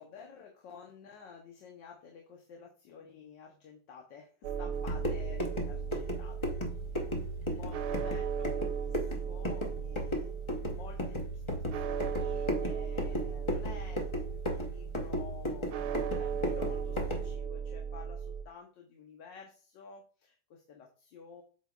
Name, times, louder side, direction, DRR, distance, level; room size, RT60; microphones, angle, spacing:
voice 1, 0.0-6.5 7.5-10.3 10.6-21.4, left 6 dB, 80° left, 1 dB, 1.6 m, -51 dB
sound 1, 4.4-18.4, right 7 dB, 70° right, 1.1 m, -37 dB
sound 2, 4.7-17.3, equal, 35° left, 0.5 m, -36 dB
8.0 x 5.2 x 2.4 m, 0.40 s
omnidirectional pair, 1.9 m